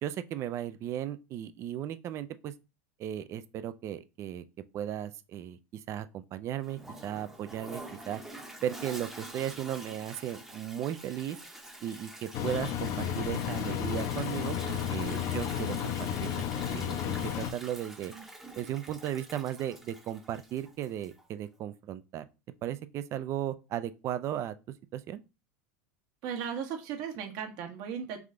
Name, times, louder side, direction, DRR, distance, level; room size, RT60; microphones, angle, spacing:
voice 1, 0.0-2.5 3.0-4.4 4.7-8.2 8.6-11.4 11.8-15.9 16.2-18.1 18.6-22.2 22.6-24.5 24.9-25.2, right 11 dB, 40° right, 0.4 m, -36 dB
Toilet flush, 6.6-21.3, right 1 dB, 5° right, 0.8 m, -47 dB
Engine, 12.3-17.5, left 9 dB, 45° left, 0.5 m, -32 dB
voice 2, 26.2-28.2, right 7 dB, 60° right, 1.2 m, -36 dB
3.5 x 3.2 x 3.7 m
supercardioid pair, 110°, 7 cm